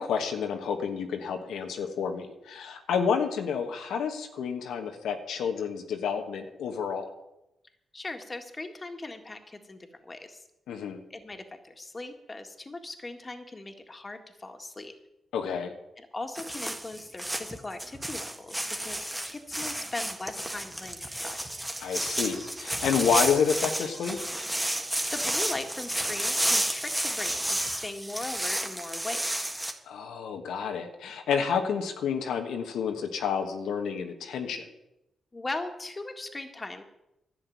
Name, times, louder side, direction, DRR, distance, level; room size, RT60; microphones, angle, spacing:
voice 1, 0.0-7.1 10.7-11.0 15.3-15.7 21.8-24.2 29.9-34.7, left 6 dB, 85° left, 5 dB, 1.3 m, -29 dB
voice 2, 7.9-10.4 11.1-14.9 16.0-21.4 25.1-29.2 35.3-36.8, left 2 dB, 30° left, 6 dB, 1.9 m, -39 dB
sound 1, 16.4-29.7, right 1 dB, 10° right, 1.7 m, -31 dB
11.5 x 6.6 x 9.3 m, 0.88 s
cardioid pair, 70°, 0 cm